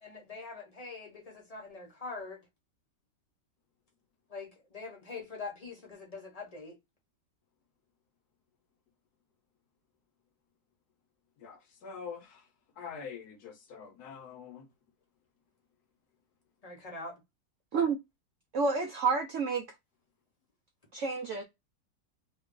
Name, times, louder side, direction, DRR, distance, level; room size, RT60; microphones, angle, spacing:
voice 1, 0.0-2.4 4.3-6.8 16.6-17.2, left 3 dB, 30° left, 0.8 m, -43 dB
voice 2, 11.4-12.4 12.8-14.7, left 6 dB, 65° left, 1.2 m, -45 dB
voice 3, 18.5-19.6 20.9-21.4, right 4 dB, 75° right, 0.7 m, -29 dB
3.1 x 2.3 x 3.6 m
omnidirectional pair, 1.9 m